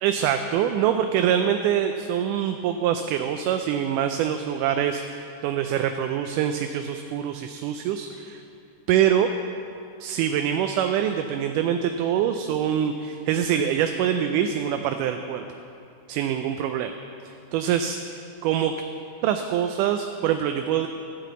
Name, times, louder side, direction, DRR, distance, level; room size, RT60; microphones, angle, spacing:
voice 1, 0.0-8.4 8.9-9.3 10.0-15.5 16.1-16.9 17.5-18.0 18.4-18.7 19.2-20.9, right 9 dB, 85° right, 6 dB, 2.1 m, -24 dB
13.0 x 5.9 x 8.1 m, 2.6 s
omnidirectional pair, 3.6 m